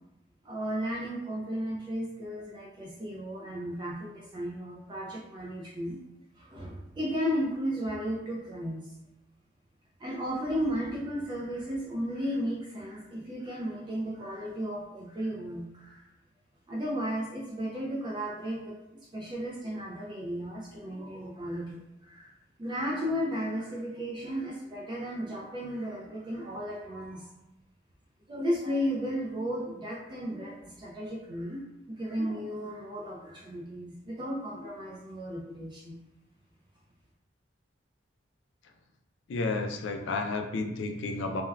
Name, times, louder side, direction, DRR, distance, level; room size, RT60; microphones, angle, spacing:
voice 1, 0.4-6.0 6.4-8.8 10.0-16.0 16.7-18.8 19.1-22.3 22.6-27.3 28.3-31.6 31.9-36.0, equal, 25° right, -3 dB, 0.3 m, -34 dB
voice 2, 39.3-41.4, left 3 dB, 75° left, 5 dB, 0.3 m, -31 dB
3.3 x 2.1 x 2.2 m, 0.92 s
head